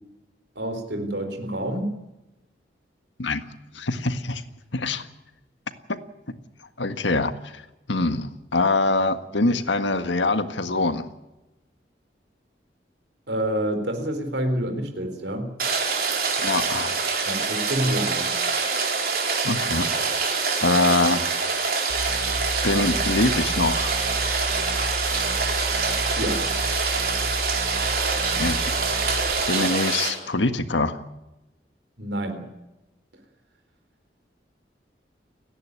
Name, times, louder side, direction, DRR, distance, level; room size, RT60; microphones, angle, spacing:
voice 1, 0.6-2.0 13.3-15.5 17.2-18.3 26.1-26.5 32.0-32.5, right 1 dB, 75° right, 7 dB, 4.1 m, -28 dB
voice 2, 3.7-4.4 4.7-5.1 6.8-7.3 7.9-11.0 16.4-17.0 19.4-19.9 20.6-21.4 22.6-24.0 28.3-28.8 29.5-31.0, left 2 dB, 85° left, 9 dB, 1.7 m, -24 dB
Rain, 15.6-30.1, right 4 dB, 55° right, 4.2 m, -25 dB
sound 1, 21.9-29.4, equal, 65° left, 3.6 m, -32 dB
30.0 x 11.0 x 9.7 m, 0.98 s
head